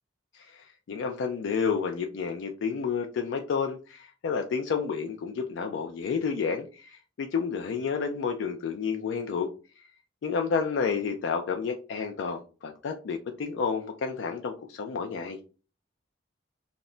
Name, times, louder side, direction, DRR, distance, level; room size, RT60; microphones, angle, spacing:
voice 1, 0.3-9.5 9.8-9.9 10.2-15.4, left 5 dB, 75° left, 4 dB, 0.3 m, -30 dB
2.1 x 2.1 x 3.6 m, 0.35 s
head